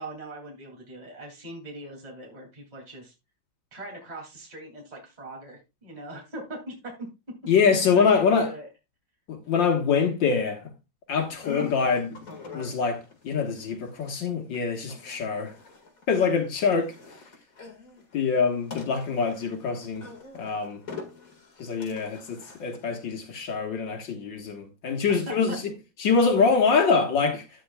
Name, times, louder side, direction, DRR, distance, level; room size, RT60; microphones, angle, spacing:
voice 1, 0.0-3.1 3.7-6.7 7.9-8.7 25.1-25.6, right 1 dB, 20° right, 2.7 m, -41 dB
voice 2, 7.5-8.5 9.3-10.7 11.1-12.2 12.5-15.5 16.1-16.9 18.1-20.1 20.3-20.8 21.6-25.6 26.0-27.4, left 5 dB, 75° left, 2.1 m, -24 dB
sound 1, 11.3-23.2, left 4 dB, 45° left, 2.2 m, -44 dB
12.0 x 9.1 x 2.3 m
omnidirectional pair, 2.1 m